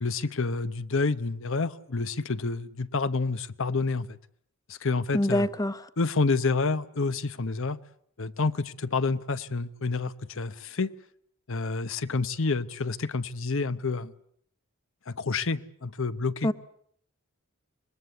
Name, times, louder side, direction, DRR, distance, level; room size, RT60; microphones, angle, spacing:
voice 1, 0.0-4.2 4.7-5.5 6.0-7.8 8.2-10.9 11.5-14.1 15.1-16.5, left 3 dB, 65° left, 0.9 m, -28 dB
voice 2, 5.1-5.9 16.4-16.5, left 1 dB, 15° left, 1.0 m, -25 dB
25.5 x 20.5 x 8.3 m
head